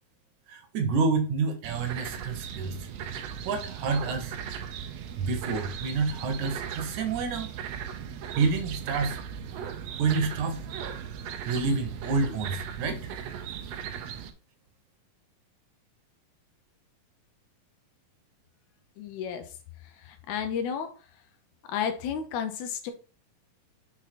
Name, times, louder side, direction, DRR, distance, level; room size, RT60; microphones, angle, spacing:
voice 1, 0.5-2.9 3.4-4.4 5.2-7.5 8.3-9.2 10.0-10.6 11.4-13.1, right 4 dB, 70° right, 2.1 m, -28 dB
sound 1, 1.6-14.3, right 8 dB, 90° right, 1.5 m, -38 dB
voice 2, 19.0-20.9 21.7-22.9, left 7 dB, 70° left, 2.0 m, -32 dB
6.1 x 3.9 x 4.1 m
omnidirectional pair, 3.8 m